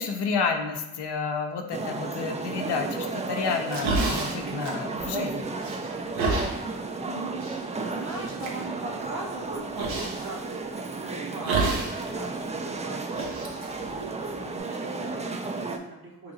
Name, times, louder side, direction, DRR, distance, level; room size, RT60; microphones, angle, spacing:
voice 1, 0.0-5.5, left 5 dB, 65° left, 4 dB, 0.7 m, -30 dB
sound 1, 1.7-15.8, right 3 dB, 15° right, 0.3 m, -33 dB
sound 2, 3.5-5.3 5.6-6.5 7.4-7.6 8.1-8.5 9.8-10.2 11.4-12.1 12.3-12.4 13.1-14.6, right 3 dB, 85° right, 0.8 m, -29 dB
voice 2, 6.4-7.5 7.7-13.7 14.0-16.3, right 3 dB, 50° right, -5 dB, 0.8 m, -40 dB
3.0 x 2.6 x 3.9 m, 0.99 s
supercardioid pair, 45°, 45 cm